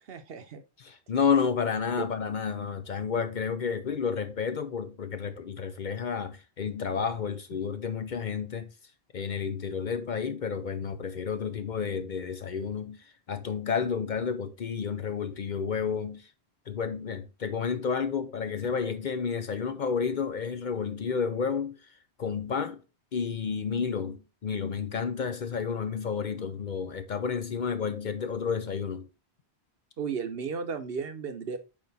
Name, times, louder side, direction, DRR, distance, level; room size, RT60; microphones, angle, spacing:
voice 1, 0.1-0.6 2.0-2.1 30.0-31.6, right 6 dB, 65° right, 1.0 m, -34 dB
voice 2, 0.8-8.7 9.1-16.3 16.7-21.8 22.2-22.8 23.1-29.1, left 6 dB, 55° left, 0.7 m, -31 dB
8.5 x 3.1 x 4.0 m
omnidirectional pair, 1.1 m